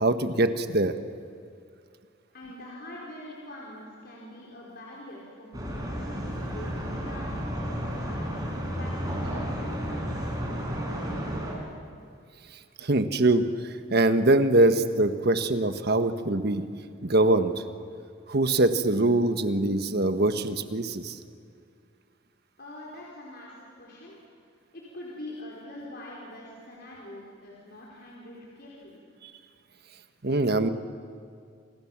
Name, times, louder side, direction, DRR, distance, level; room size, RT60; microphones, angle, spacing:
voice 1, 0.0-0.9 12.8-13.4 13.9-16.6 17.0-17.5 18.3-21.2 30.2-30.7, right 2 dB, 55° right, 9 dB, 1.4 m, -23 dB
voice 2, 2.3-5.8 6.4-11.3 22.6-24.2 24.7-29.0, left 1 dB, 55° left, -4 dB, 4.9 m, -44 dB
sound 1, 5.5-11.5, equal, 20° right, 5.8 m, -32 dB
29.5 x 26.0 x 7.5 m, 2.3 s
head